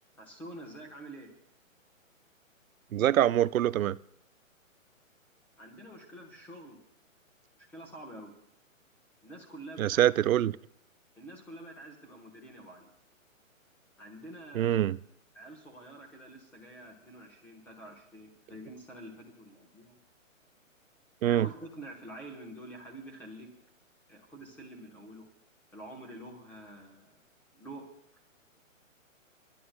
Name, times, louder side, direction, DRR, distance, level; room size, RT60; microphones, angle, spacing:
voice 1, 0.2-1.3 5.6-6.8 7.6-8.4 9.2-10.1 11.2-12.9 14.0-14.8 15.3-20.0 21.2-23.5 24.1-25.3 25.7-27.2 27.5-27.8, right 1 dB, 5° left, 1.1 m, -47 dB
voice 2, 2.9-4.0 9.8-10.5 14.5-15.0 21.2-21.5, right 12 dB, 80° right, 0.5 m, -24 dB
28.0 x 11.5 x 2.2 m
hypercardioid pair, 165°, 41 cm